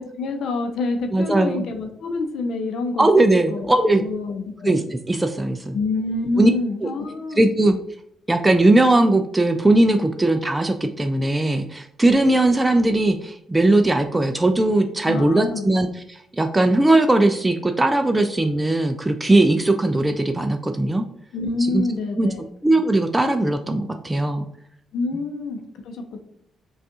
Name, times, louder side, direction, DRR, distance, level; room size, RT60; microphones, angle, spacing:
voice 1, 0.0-3.2 3.5-4.8 5.7-7.4 15.0-15.7 21.3-22.4 24.9-26.2, left 3 dB, 75° left, 4 dB, 0.6 m, -27 dB
voice 2, 1.1-1.6 3.0-4.0 4.6-5.8 6.4-6.5 6.8-6.9 7.4-7.8 8.3-21.0 21.7-21.8 22.2-22.3 22.6-24.5, right 2 dB, 15° right, 6 dB, 0.3 m, -19 dB
5.1 x 2.4 x 2.7 m, 0.69 s
cardioid pair, 90°, 0 cm